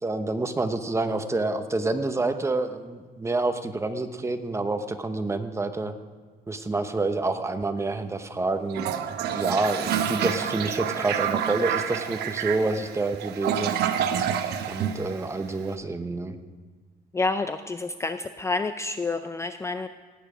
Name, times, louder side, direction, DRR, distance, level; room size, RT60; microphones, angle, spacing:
voice 1, 0.0-5.9 6.5-13.7 14.7-16.4, right 2 dB, 15° right, 9 dB, 0.9 m, -28 dB
Toilet flush, 8.7-15.6, right 9 dB, 75° right, 1.0 m, -28 dB
voice 2, 17.1-19.9, left 3 dB, 15° left, 10 dB, 0.4 m, -29 dB
17.5 x 9.0 x 5.0 m, 1.4 s
cardioid pair, 110°, 17 cm